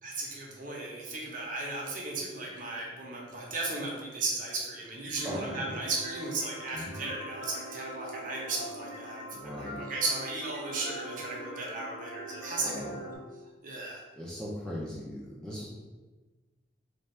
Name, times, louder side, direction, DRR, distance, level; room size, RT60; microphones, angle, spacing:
voice 1, 0.0-13.1 13.6-14.0, right 3 dB, 45° right, -2 dB, 0.7 m, -36 dB
sound 1, 5.2-13.2, equal, 50° left, 1.5 m, -43 dB
voice 2, 5.2-5.8 6.7-6.9 9.3-9.9 12.6-13.0 14.1-15.7, equal, 5° left, -6 dB, 0.5 m, -39 dB
3.3 x 2.4 x 4.2 m, 1.2 s
head